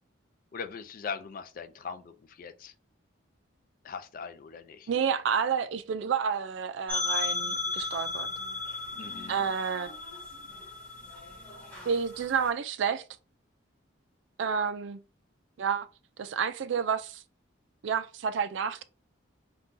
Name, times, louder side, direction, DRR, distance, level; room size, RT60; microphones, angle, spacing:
voice 1, 0.5-2.7 3.8-4.9 9.0-9.4, left 6 dB, 45° left, 0.3 m, -40 dB
voice 2, 4.9-8.3 9.3-9.9 11.9-13.0 14.4-15.0 15.6-15.9 16.2-17.2 17.8-18.8, right 6 dB, 65° right, 0.3 m, -30 dB
sound 1, 6.9-12.5, left 3 dB, 5° left, 0.9 m, -35 dB
2.6 x 2.3 x 3.6 m
head